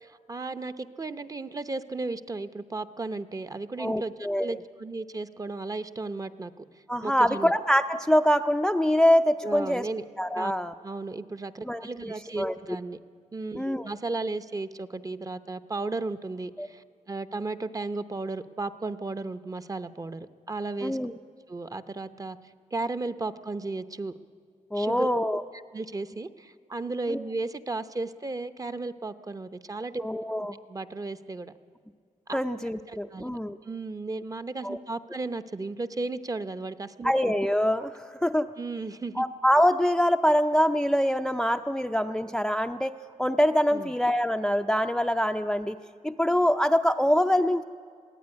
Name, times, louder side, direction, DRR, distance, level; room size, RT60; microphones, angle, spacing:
voice 1, 0.0-6.6 7.0-7.5 9.4-10.0 10.4-10.5 10.8-13.0 13.3-21.0 21.5-22.4 22.7-24.1 24.7-25.1 25.7-30.0 30.7-31.5 32.3-32.4 32.9-33.3 33.6-37.1 38.6-39.2 43.7-43.9, right 3 dB, 25° right, 11 dB, 0.7 m, -34 dB
voice 2, 3.8-4.6 6.9-9.9 10.2-10.7 11.7-11.9 12.4-12.5 13.5-13.9 16.6-16.7 20.8-21.1 24.7-25.4 27.1-27.2 30.0-30.6 32.3-33.6 34.6-34.8 37.0-38.5 39.2-42.9 43.2-45.8 46.0-47.6, equal, 5° left, 8 dB, 0.4 m, -24 dB
21.5 x 16.0 x 9.6 m, 2.2 s
wide cardioid pair, 135°, 13 cm